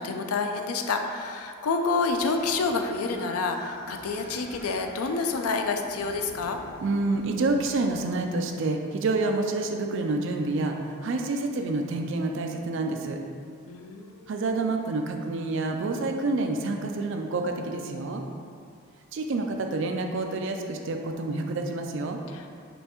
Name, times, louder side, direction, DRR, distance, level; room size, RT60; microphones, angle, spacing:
voice 1, 0.0-6.6 13.7-14.4 22.3-22.5, left 4 dB, 80° left, 5 dB, 0.4 m, -28 dB
sound 1, 2.0-8.5, equal, 40° left, 1.4 m, -46 dB
voice 2, 6.8-13.2 14.3-18.2 19.1-22.2, right 2 dB, 55° right, 4 dB, 0.4 m, -28 dB
5.3 x 3.2 x 3.0 m, 2.3 s
head